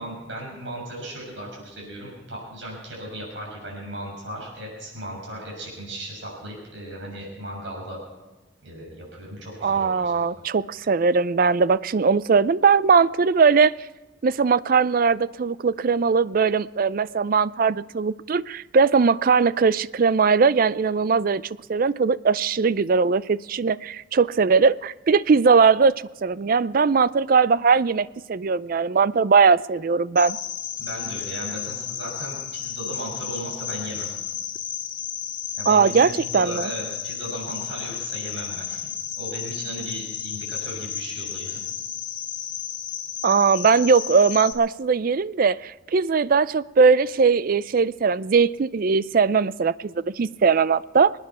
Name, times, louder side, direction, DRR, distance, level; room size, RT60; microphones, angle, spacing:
voice 1, 0.0-8.0 8.6-10.2 30.8-34.1 35.6-38.8 39.2-41.6, right 1 dB, 70° right, -3 dB, 6.2 m, -36 dB
voice 2, 9.6-13.7 14.2-21.4 21.7-30.4 35.7-36.7 43.2-51.1, right 5 dB, 50° right, 18 dB, 0.4 m, -20 dB
Cricket, 30.2-44.5, left 10 dB, 70° left, 1.7 m, -33 dB
24.5 x 9.8 x 5.6 m, 1.2 s
head